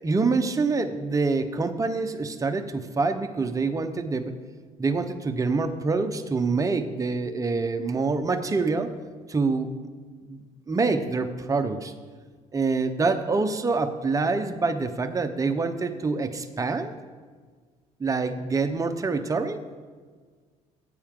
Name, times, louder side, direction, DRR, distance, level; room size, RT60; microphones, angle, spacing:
voice 1, 0.0-4.3 4.8-8.9 9.3-9.7 10.3-10.4 10.7-11.9 12.5-16.9 18.0-19.6, right 4 dB, 25° right, 7 dB, 0.8 m, -26 dB
14.0 x 8.7 x 3.7 m, 1.5 s
supercardioid pair, 80°, 14 cm